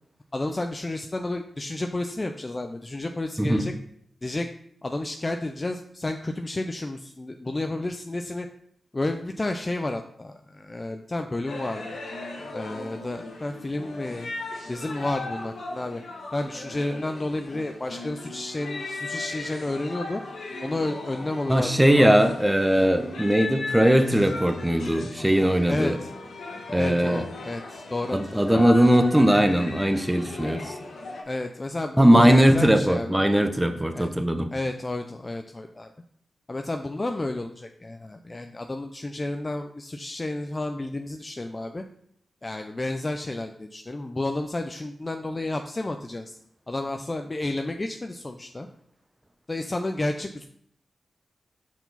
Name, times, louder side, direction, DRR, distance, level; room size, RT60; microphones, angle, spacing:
voice 1, 0.3-3.7 4.2-4.5 4.8-8.5 8.9-11.8 12.5-14.3 14.7-16.0 16.3-20.2 20.6-22.1 22.8-22.9 25.7-26.1 26.8-28.4 28.7-28.9 31.2-33.2 33.9-34.1 34.5-35.9 36.5-41.8 42.4-46.4 46.7-48.7 49.5-50.4, left 2 dB, 30° left, 5 dB, 0.4 m, -31 dB
sound 1, 11.5-31.2, left 2 dB, 85° left, 1.3 m, -37 dB
voice 2, 21.5-26.0 26.7-27.2 28.1-30.7 32.0-34.5, equal, 15° right, 8 dB, 0.8 m, -20 dB
5.9 x 4.5 x 4.0 m, 0.71 s
cardioid pair, 50°, 0 cm